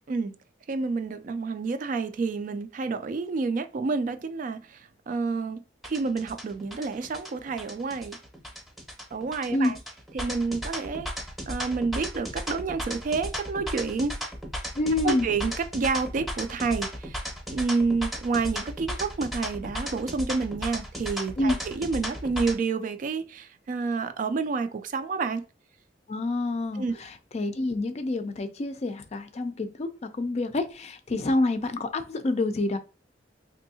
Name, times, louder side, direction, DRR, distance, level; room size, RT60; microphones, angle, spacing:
voice 1, 0.7-8.2 9.1-9.8 10.1-11.1 11.5-14.2 15.0-25.4 26.8-27.0, right 4 dB, 45° right, 0.3 m, -29 dB
sound 1, 5.8-22.5, equal, ahead, 0.7 m, -35 dB
voice 2, 14.7-15.3 21.4-21.6 26.1-32.8, left 2 dB, 35° left, 0.4 m, -27 dB
3.4 x 2.7 x 2.7 m
head